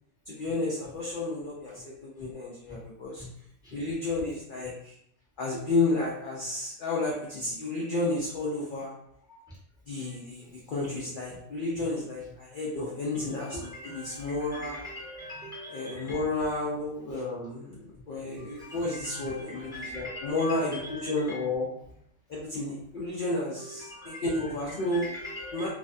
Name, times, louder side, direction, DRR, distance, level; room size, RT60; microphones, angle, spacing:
voice 1, 0.3-3.2 3.7-4.9 5.4-8.9 9.9-14.8 15.7-21.7 22.3-25.1 25.5-25.7, left 2 dB, 60° left, -5 dB, 0.6 m, -32 dB
voice 2, 13.2-16.2 18.3-21.4 23.6-24.5 24.9-25.7, left 1 dB, 5° right, -8 dB, 0.7 m, -42 dB
2.5 x 2.2 x 2.5 m, 0.72 s
omnidirectional pair, 1.3 m